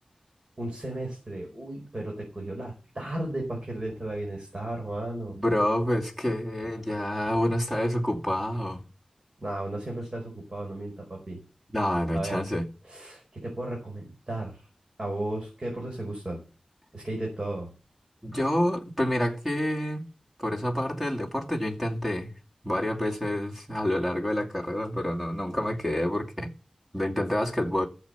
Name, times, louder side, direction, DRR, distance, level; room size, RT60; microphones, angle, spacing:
voice 1, 0.6-5.4 9.4-11.4 12.1-12.4 12.9-14.6 15.0-16.4 16.9-17.7, right 1 dB, 45° right, 4.8 m, -34 dB
voice 2, 5.3-8.9 11.7-12.7 18.2-20.1 20.4-22.3 22.6-26.5 26.9-27.9, left 1 dB, 10° right, 2.6 m, -28 dB
14.0 x 7.5 x 7.0 m
wide cardioid pair, 80°, 2 cm